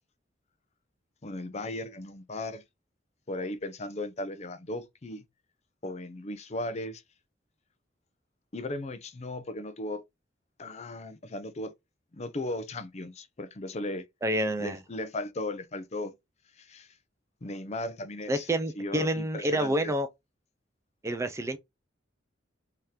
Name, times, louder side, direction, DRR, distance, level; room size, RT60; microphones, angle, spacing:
voice 1, 1.2-2.6 3.3-5.2 5.8-7.0 8.5-10.0 10.6-11.7 12.1-14.0 14.6-16.1 16.6-16.9 17.4-18.5 18.8-19.9, left 2 dB, 35° left, 0.5 m, -36 dB
voice 2, 14.2-14.8 18.3-20.1 21.0-21.6, right 1 dB, 15° right, 0.4 m, -28 dB
3.6 x 2.8 x 3.2 m
head